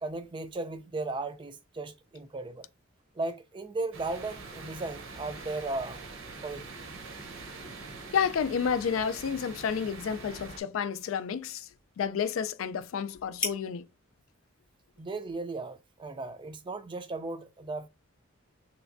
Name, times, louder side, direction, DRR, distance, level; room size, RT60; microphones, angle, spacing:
voice 1, 0.0-2.7 3.2-6.0 6.4-6.7 15.0-17.9, right 3 dB, 25° right, 0.3 m, -36 dB
sound 1, 3.9-10.6, right 3 dB, 65° right, 0.7 m, -44 dB
voice 2, 8.1-11.7 12.0-13.8, left 7 dB, 75° left, 0.3 m, -30 dB
sound 2, 9.1-16.8, left 4 dB, 25° left, 0.8 m, -45 dB
3.3 x 3.0 x 2.5 m
head